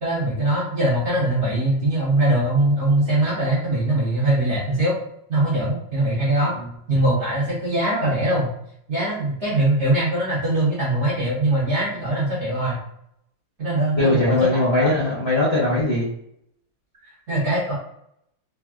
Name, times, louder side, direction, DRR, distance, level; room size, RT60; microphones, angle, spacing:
voice 1, 0.0-5.0 5.3-6.5 6.9-8.5 8.9-12.8 13.6-15.0 17.0-17.7, right 1 dB, 55° right, -8 dB, 0.8 m, -22 dB
voice 2, 13.9-16.1, left 1 dB, 60° left, -7 dB, 0.6 m, -20 dB
3.3 x 2.2 x 2.3 m, 0.74 s
omnidirectional pair, 2.2 m